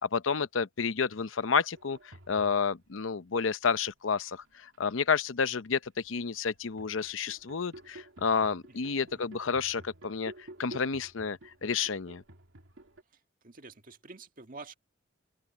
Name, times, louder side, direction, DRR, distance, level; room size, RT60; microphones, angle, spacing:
voice 1, 0.0-10.3 10.6-12.2, left 5 dB, 90° left, 0.7 m, -30 dB
sound 1, 1.7-3.0 3.9-5.1 5.5-13.0, right 1 dB, 90° right, 2.6 m, -52 dB
voice 2, 8.7-9.3 13.4-14.8, right 3 dB, 45° right, 1.7 m, -49 dB
open air
head